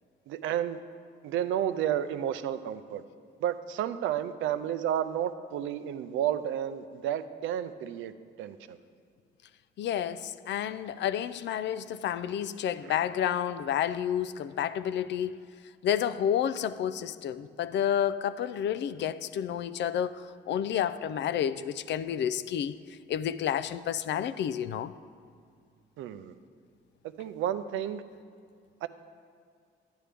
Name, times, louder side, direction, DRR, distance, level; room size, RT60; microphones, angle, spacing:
voice 1, 0.3-0.8 1.2-3.0 3.4-8.1 8.4-8.8 12.8-13.0 26.0-26.3 27.2-28.0 28.8-28.9, right 10 dB, 85° right, 0.5 m, -31 dB
voice 2, 9.8-15.3 15.8-20.1 20.5-22.8 23.1-24.9, left 9 dB, 65° left, 0.4 m, -30 dB
11.0 x 10.0 x 3.4 m
cardioid pair, 90°, 20 cm